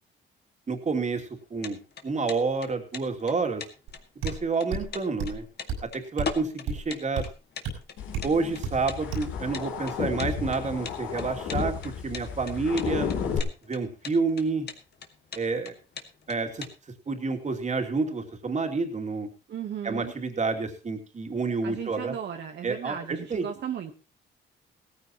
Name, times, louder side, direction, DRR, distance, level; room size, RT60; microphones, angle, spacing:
voice 1, 0.7-1.8 2.0-3.6 4.2-5.4 5.8-7.3 8.2-13.1 13.7-14.7 15.3-15.7 16.3-16.7 17.1-19.3 19.8-22.1 22.6-23.4, right 4 dB, 35° right, 4 dB, 2.7 m, -29 dB
sound 1, 1.4-16.7, left 6 dB, 55° left, 2.0 m, -40 dB
sound 2, 3.9-4.0 4.2-4.4 4.7-4.9 5.2-5.4 5.7-5.8 6.2-6.3 6.7-6.8 7.2-7.3 7.6-7.8 8.1-8.3 8.6-8.8 9.1-9.3, right 5 dB, 90° right, 5.9 m, -31 dB
sound 3, 8.0-13.4, left 7 dB, 85° left, 3.2 m, -33 dB
voice 2, 19.5-20.1 21.6-23.9, right 9 dB, 60° right, 4 dB, 1.2 m, -35 dB
17.0 x 14.0 x 3.0 m, 0.33 s
cardioid pair, 90°, 20 cm